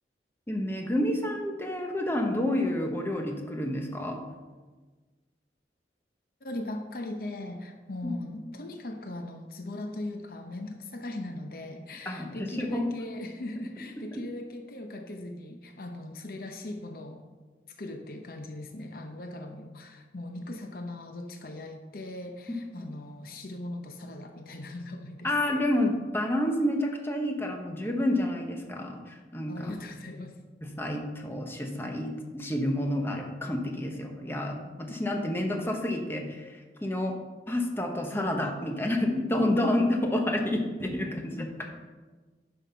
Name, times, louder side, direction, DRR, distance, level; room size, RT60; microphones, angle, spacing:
voice 1, 0.5-4.2 8.0-8.1 12.0-12.9 14.1-14.2 22.8-22.9 25.2-29.7 30.6-37.2 37.5-41.5, left 1 dB, 15° left, 2 dB, 1.1 m, -29 dB
voice 2, 6.4-17.2 17.7-25.4 29.5-30.4, left 1 dB, 55° left, 5 dB, 0.8 m, -39 dB
10.0 x 5.7 x 5.7 m, 1.3 s
head